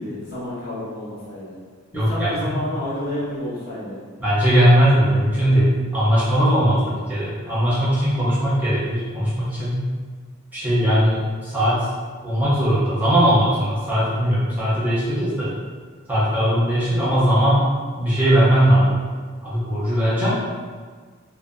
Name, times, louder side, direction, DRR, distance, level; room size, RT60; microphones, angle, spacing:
voice 1, 0.0-1.6 1.9-4.0, left 1 dB, 45° left, -8 dB, 0.8 m, -30 dB
voice 2, 1.9-2.5 4.2-9.8 10.5-11.9 12.2-15.5 16.1-17.6 18.0-18.9 19.4-20.4, equal, 10° right, -10 dB, 0.6 m, -19 dB
2.5 x 2.1 x 2.4 m, 1.6 s
head